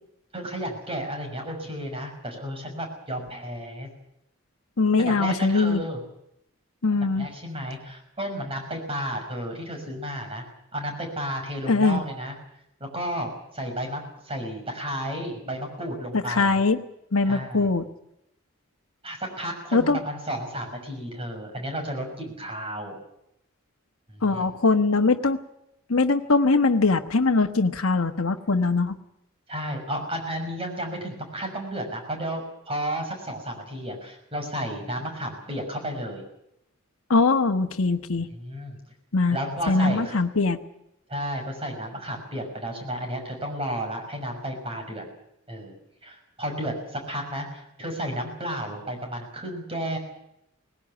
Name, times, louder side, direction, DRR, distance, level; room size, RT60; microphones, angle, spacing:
voice 1, 0.3-3.9 5.0-6.0 6.9-10.4 10.7-12.4 12.8-16.6 17.2-17.7 19.0-23.0 24.1-24.5 29.5-36.2 38.2-38.8 39.3-40.2 41.1-45.1 45.5-45.8 46.0-50.0, equal, 25° right, 3 dB, 6.1 m, -32 dB
voice 2, 4.8-5.8 6.8-7.3 11.7-12.0 16.1-16.8 17.1-17.8 19.7-20.0 24.2-25.4 25.9-29.0 37.1-38.3 39.1-39.4 39.7-40.6, left 3 dB, 85° left, 5 dB, 1.3 m, -21 dB
19.5 x 16.5 x 9.8 m, 0.80 s
head